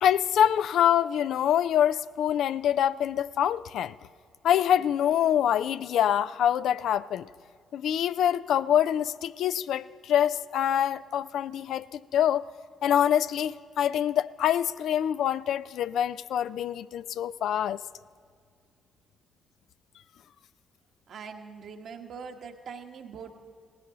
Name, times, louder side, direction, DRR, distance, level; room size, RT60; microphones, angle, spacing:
voice 1, 0.0-3.9 4.4-7.2 7.7-12.5 12.8-17.8, left 10 dB, 75° left, 0.3 m, -25 dB
voice 2, 21.1-23.3, right 6 dB, 65° right, 1.2 m, -42 dB
18.0 x 16.0 x 3.9 m
hypercardioid pair, 50°, 0 cm